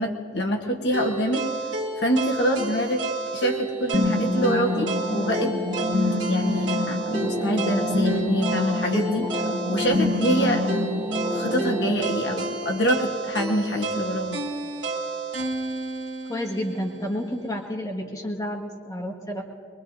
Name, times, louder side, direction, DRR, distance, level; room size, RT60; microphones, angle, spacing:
voice 1, 0.0-1.5 2.0-3.0 3.3-5.9 6.3-9.4 9.7-10.6 11.3-14.4 15.4-15.5, equal, 70° left, 2 dB, 1.1 m, -26 dB
sound 1, 0.9-17.0, right 3 dB, 85° right, 1.6 m, -31 dB
sound 2, 3.9-11.9, left 2 dB, 15° right, 3.3 m, -26 dB
voice 2, 16.3-19.4, equal, 20° left, -1 dB, 1.7 m, -30 dB
23.5 x 22.0 x 2.7 m, 2.5 s
head